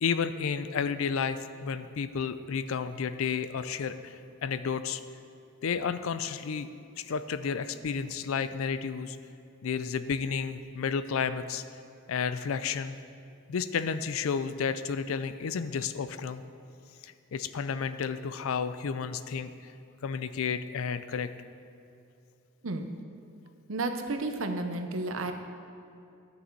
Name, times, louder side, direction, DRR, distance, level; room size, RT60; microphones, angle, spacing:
voice 1, 0.0-4.2 4.4-5.0 5.6-6.7 7.0-9.2 9.6-11.6 12.1-13.0 13.5-16.4 17.0-19.5 20.0-21.3, left 6 dB, 75° left, 12 dB, 0.4 m, -31 dB
voice 2, 23.7-25.3, right 2 dB, 65° right, 6 dB, 0.8 m, -32 dB
11.5 x 7.0 x 4.5 m, 2.6 s
head